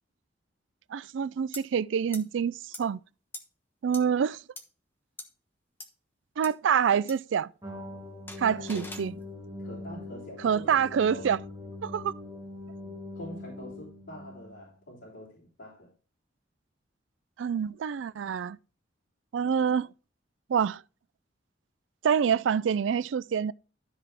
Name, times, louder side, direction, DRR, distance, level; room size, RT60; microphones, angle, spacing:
voice 1, 0.9-3.0 3.8-4.4 6.4-7.5 8.4-9.1 10.4-11.4 11.8-12.1 17.4-18.6 19.3-19.9 20.5-20.8 22.0-23.5, right 7 dB, 85° right, 0.4 m, -26 dB
sound 1, 1.5-1.6 2.1-2.2 2.7-2.8 3.3-3.4 3.9-4.0 4.6-4.7 5.2-5.3 5.8-5.9 6.4-6.5 7.1-7.2 8.3-9.1, left 2 dB, 10° left, 1.1 m, -41 dB
sound 2, 7.6-14.7, left 2 dB, 20° right, 2.0 m, -42 dB
voice 2, 8.5-8.9 9.6-11.4 12.8-15.9, equal, 90° left, 3.5 m, -45 dB
13.0 x 5.8 x 3.3 m
head